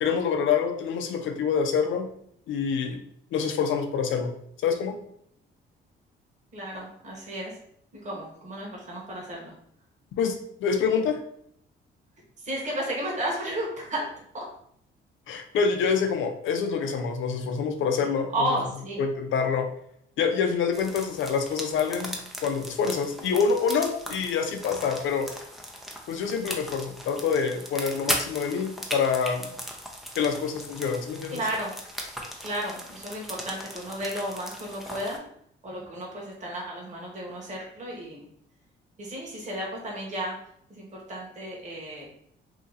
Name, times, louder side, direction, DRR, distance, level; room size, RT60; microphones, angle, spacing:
voice 1, 0.0-2.1 2.5-3.0 3.3-4.3 4.6-5.0 10.2-11.2 15.3-18.3 19.0-19.7 20.2-25.3 26.1-29.5 30.2-31.4, left 6 dB, 75° left, 6 dB, 0.6 m, -26 dB
voice 2, 6.5-7.6 8.0-9.5 12.4-14.1 14.3-14.5 18.3-19.0 31.3-31.7 32.4-35.2 35.6-38.2 39.0-40.4 40.7-42.1, right 1 dB, 35° right, -3 dB, 1.3 m, -33 dB
sound 1, 20.7-35.2, equal, ahead, 0.6 m, -38 dB
2.9 x 2.6 x 3.8 m, 0.69 s
cardioid pair, 90°, 20 cm